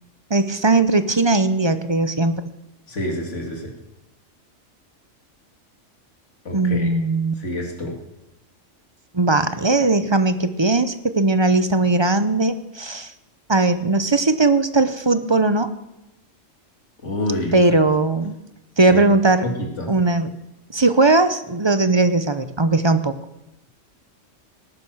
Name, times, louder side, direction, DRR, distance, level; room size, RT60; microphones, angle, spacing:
voice 1, 0.3-2.3 6.5-7.3 9.1-13.1 13.5-15.7 17.5-18.4 18.8-19.5 19.9-20.3 20.7-23.2, right 2 dB, 25° right, 11 dB, 0.7 m, -18 dB
voice 2, 2.9-3.7 6.4-6.9 7.4-7.9 17.0-17.8 18.9-19.0 19.4-19.9, left 1 dB, 65° left, 2 dB, 3.0 m, -27 dB
18.5 x 10.5 x 6.3 m, 0.95 s
omnidirectional pair, 1.3 m